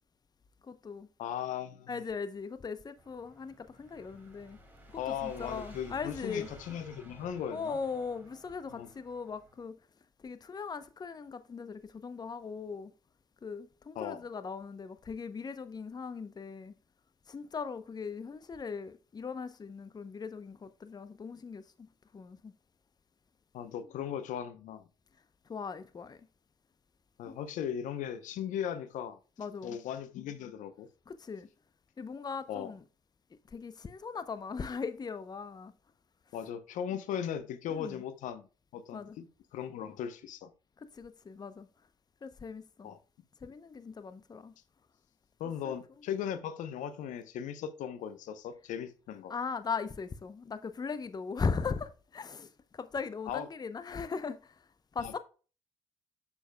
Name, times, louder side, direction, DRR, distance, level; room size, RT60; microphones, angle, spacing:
voice 1, 0.6-1.1 1.9-4.6 4.9-6.5 7.5-9.8 10.2-12.9 13.4-16.7 17.3-22.5 25.5-26.3 27.3-27.4 29.4-29.8 31.1-31.5 32.0-32.8 33.5-35.7 36.9-37.0 37.7-38.0 38.9-39.2 40.8-41.7 42.2-42.9 43.4-44.5 45.6-45.7 49.3-54.7 54.9-55.2, left 5 dB, 30° left, 0.6 m, -39 dB
voice 2, 1.2-1.9 5.0-7.8 8.7-8.9 14.0-14.2 23.5-24.8 27.2-29.2 29.6-30.9 32.5-32.7 36.3-38.5 38.7-39.3 39.5-40.5 42.8-43.0 45.4-49.4 53.3-53.5 55.0-55.2, left 9 dB, 70° left, 0.7 m, -38 dB
sound 1, 3.0-9.6, right 1 dB, 15° right, 3.3 m, -54 dB
7.0 x 6.7 x 2.2 m
supercardioid pair, 65°, 13 cm